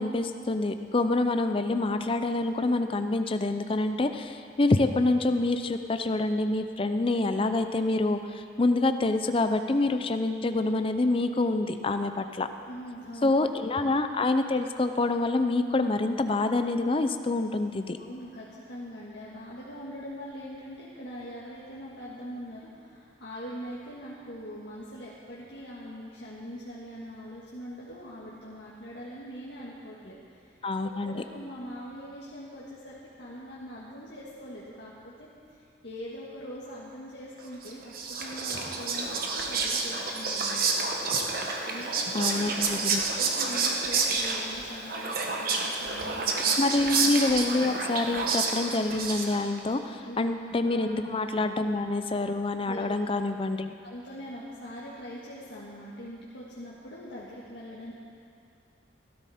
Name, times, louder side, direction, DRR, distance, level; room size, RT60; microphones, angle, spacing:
voice 1, 0.0-12.5 13.2-18.0 30.6-31.2 42.1-43.0 46.6-53.7, left 2 dB, 30° left, 8 dB, 0.5 m, -26 dB
voice 2, 12.7-13.3 18.0-30.5 30.8-40.9 41.6-42.5 43.1-46.5 50.0-50.3 50.6-50.9 52.6-53.1 53.8-57.9, equal, 70° left, -7 dB, 1.7 m, -42 dB
Whispering, 37.6-49.6, right 4 dB, 55° right, 1.1 m, -29 dB
16.0 x 13.0 x 4.3 m, 2.5 s
head